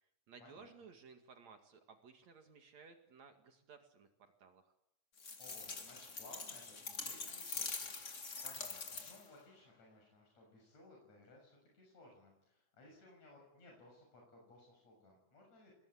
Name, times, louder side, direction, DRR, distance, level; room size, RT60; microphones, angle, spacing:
voice 1, 0.3-4.1 4.4-4.6, right 5 dB, 65° right, 5 dB, 3.3 m, -58 dB
sound 1, 5.2-9.4, left 4 dB, 30° left, 1.8 m, -44 dB
voice 2, 5.4-15.8, left 2 dB, 65° left, 0 dB, 8.0 m, -61 dB
27.0 x 21.0 x 8.6 m, 0.85 s
omnidirectional pair, 3.4 m